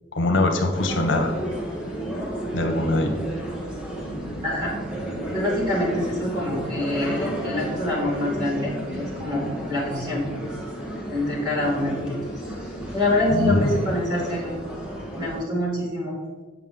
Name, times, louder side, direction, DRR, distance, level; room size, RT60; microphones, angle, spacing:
voice 1, 0.1-1.3 2.5-3.2 13.3-13.8, left 2 dB, 85° left, 3 dB, 1.0 m, -22 dB
sound 1, 0.7-15.4, right 1 dB, 5° right, 1.2 m, -32 dB
voice 2, 4.4-4.7 5.3-10.2 11.1-12.2 12.9-14.6 15.2-16.2, left 1 dB, 25° right, -6 dB, 2.3 m, -25 dB
7.3 x 5.6 x 3.7 m, 1.3 s
head